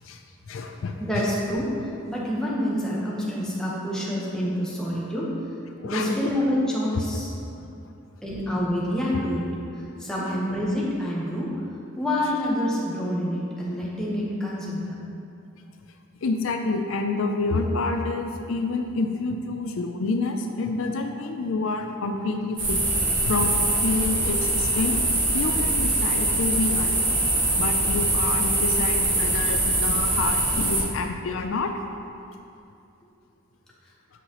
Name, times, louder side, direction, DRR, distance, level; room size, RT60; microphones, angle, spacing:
voice 1, 0.5-1.3 5.8-6.2 7.5-7.7 16.2-22.8 23.2-25.0 25.3-31.7, left 3 dB, 70° left, 5 dB, 0.4 m, -28 dB
voice 2, 1.0-1.7 2.1-5.3 5.8-7.3 8.2-9.4 10.0-11.5 11.9-15.0, equal, 5° left, -6 dB, 1.0 m, -27 dB
sound 1, 22.6-30.8, right 2 dB, 60° right, 1.6 m, -23 dB
8.3 x 5.6 x 3.0 m, 2.6 s
head